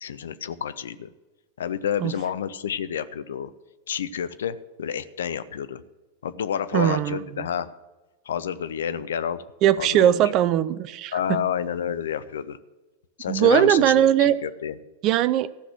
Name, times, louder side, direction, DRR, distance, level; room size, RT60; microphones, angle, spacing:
voice 1, 0.0-1.1 1.6-3.5 3.9-5.8 6.2-7.7 8.3-9.4 9.8-10.2 11.1-12.6 13.2-14.7, left 8 dB, 65° left, 13 dB, 0.5 m, -29 dB
voice 2, 6.7-7.5 9.6-11.4 13.3-14.4 15.0-15.5, right 11 dB, 40° right, 17 dB, 0.5 m, -20 dB
14.5 x 6.0 x 7.7 m, 1.2 s
figure-of-eight pair, 90°, 0 cm